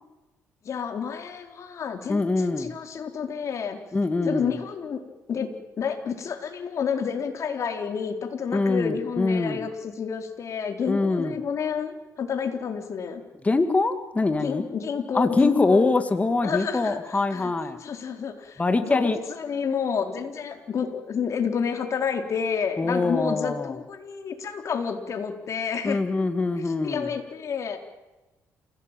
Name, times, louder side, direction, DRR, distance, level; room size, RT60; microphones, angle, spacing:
voice 1, 0.6-3.8 4.2-5.0 5.3-5.5 5.8-13.2 14.4-15.9 16.4-17.5 17.8-26.0 26.6-27.8, left 6 dB, 55° left, 5 dB, 4.1 m, -30 dB
voice 2, 2.1-2.7 3.9-4.6 8.5-9.6 10.9-11.3 13.4-14.7 15.1-17.8 18.6-19.2 22.8-23.8 25.8-27.1, left 3 dB, 20° left, 8 dB, 2.1 m, -24 dB
28.5 x 17.5 x 9.2 m, 1.1 s
cardioid pair, 90°, 6 cm